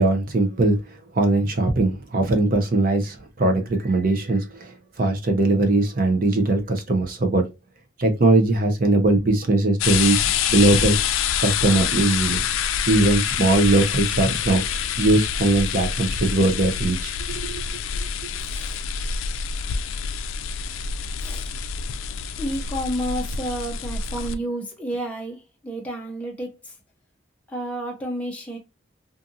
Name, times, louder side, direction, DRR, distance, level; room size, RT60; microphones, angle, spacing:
voice 1, 0.0-7.5 8.0-11.0 11.4-12.4 12.9-17.6, right 2 dB, 45° right, 0.6 m, -20 dB
sound 1, 9.8-24.3, left 7 dB, 90° left, 0.3 m, -26 dB
voice 2, 18.4-18.8 21.2-21.5 22.4-26.7 27.5-28.6, right 1 dB, 5° left, 0.5 m, -31 dB
2.6 x 2.5 x 2.6 m
head